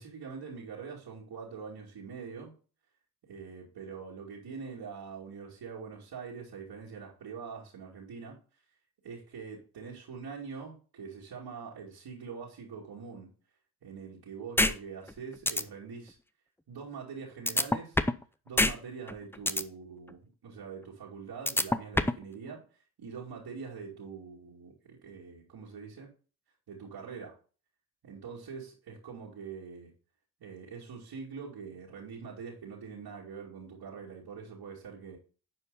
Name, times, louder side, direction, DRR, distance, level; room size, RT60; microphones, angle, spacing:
voice 1, 0.0-2.5 3.3-8.3 9.0-13.3 13.8-16.2 16.7-18.0 18.5-22.6 23.0-26.1 26.7-27.3 28.0-29.9 30.4-35.2, right 5 dB, 70° right, 2.6 m, -44 dB
sound 1, 14.6-14.7 15.1-15.2 15.5-15.6 17.5-18.2 18.6-18.7 19.1-19.6 21.5-22.2, left 1 dB, 5° left, 0.6 m, -24 dB
9.9 x 4.5 x 4.0 m
supercardioid pair, 55°, 41 cm